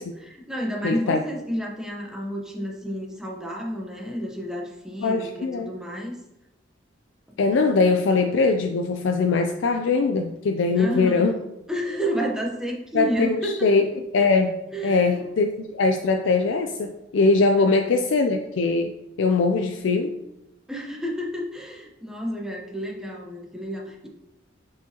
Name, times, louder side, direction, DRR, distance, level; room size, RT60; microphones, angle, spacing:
voice 1, 0.0-6.2 10.7-11.3 11.7-13.7 14.7-15.2 17.5-17.8 20.7-24.1, equal, 5° right, -2 dB, 0.9 m, -31 dB
voice 2, 0.8-1.2 5.0-5.7 7.4-11.4 12.9-13.8 14.1-14.6 14.8-20.2, left 3 dB, 75° left, 5 dB, 0.4 m, -21 dB
7.4 x 4.9 x 2.9 m, 0.96 s
head